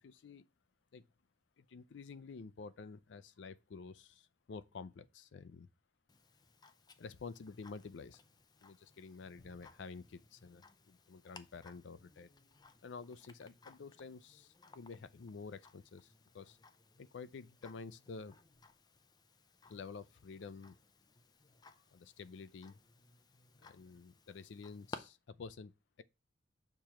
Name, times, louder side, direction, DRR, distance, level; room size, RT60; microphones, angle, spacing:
voice 1, 0.0-0.5 0.9-1.0 1.6-5.7 7.0-8.2 8.6-12.3 12.8-16.6 17.0-18.4 19.7-20.8 21.9-22.8 23.6-25.7, left 4 dB, 80° left, 0.4 m, -50 dB
Tick-tock, 6.1-25.0, left 3 dB, 25° left, 0.5 m, -59 dB
6.7 x 3.0 x 5.6 m
head